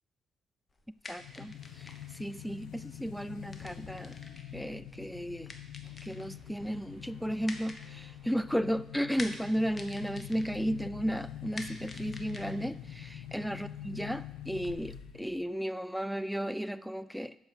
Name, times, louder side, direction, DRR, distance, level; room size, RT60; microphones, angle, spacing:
sound 1, 0.7-14.7, left 2 dB, 30° left, 1.1 m, -50 dB
voice 1, 1.1-4.2 4.5-5.5 6.0-17.4, equal, ahead, 15 dB, 0.3 m, -34 dB
sound 2, 1.2-15.5, left 11 dB, 90° left, 0.7 m, -45 dB
sound 3, 6.2-9.1, right 3 dB, 30° right, 2.5 m, -61 dB
8.2 x 5.9 x 6.5 m, 0.86 s
cardioid pair, 90°, 0 cm